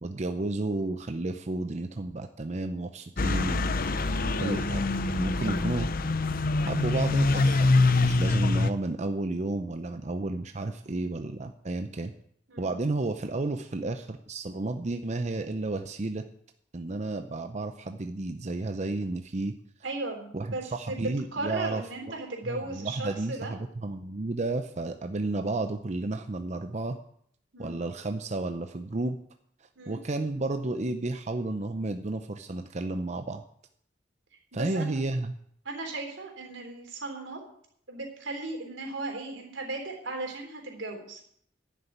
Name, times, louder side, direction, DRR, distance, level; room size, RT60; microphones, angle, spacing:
voice 1, 0.0-3.8 4.4-4.8 5.1-5.9 6.6-12.1 12.6-16.2 16.7-19.6 20.3-21.8 22.4-27.0 27.6-29.2 29.9-33.4 34.5-35.3, right 2 dB, 35° right, 7 dB, 0.6 m, -32 dB
sound 1, 3.2-8.7, left 2 dB, 50° left, 0.7 m, -25 dB
voice 2, 19.8-21.0 21.3-23.5 27.5-27.8 29.8-30.0 34.5-35.0 35.7-37.4 37.9-41.2, right 2 dB, 90° right, 2 dB, 3.5 m, -36 dB
11.5 x 6.8 x 9.2 m, 0.68 s
head